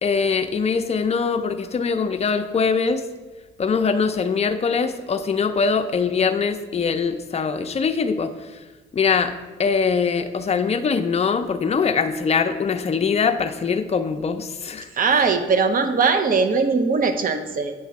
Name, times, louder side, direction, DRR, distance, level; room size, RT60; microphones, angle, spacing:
voice 1, 0.0-3.0 3.6-8.3 8.9-9.3 9.6-14.9, left 5 dB, 30° left, 7 dB, 0.5 m, -22 dB
voice 2, 14.9-17.7, right 5 dB, 45° right, 8 dB, 0.7 m, -20 dB
8.1 x 3.1 x 5.8 m, 1.2 s
cardioid pair, 90°, 20 cm